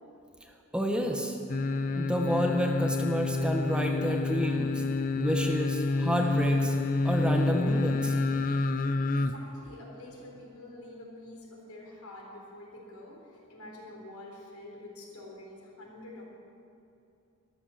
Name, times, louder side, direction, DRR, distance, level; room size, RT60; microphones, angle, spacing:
voice 1, 0.7-1.4 1.8-4.8 5.2-6.8 7.0-8.2, equal, 5° right, 3 dB, 0.8 m, -29 dB
sound 1, 1.5-9.3 9.7-9.8, left 3 dB, 35° left, 0.5 m, -28 dB
voice 2, 9.0-16.2, left 1 dB, 80° left, -1 dB, 3.8 m, -47 dB
13.0 x 13.0 x 7.0 m, 2.8 s
head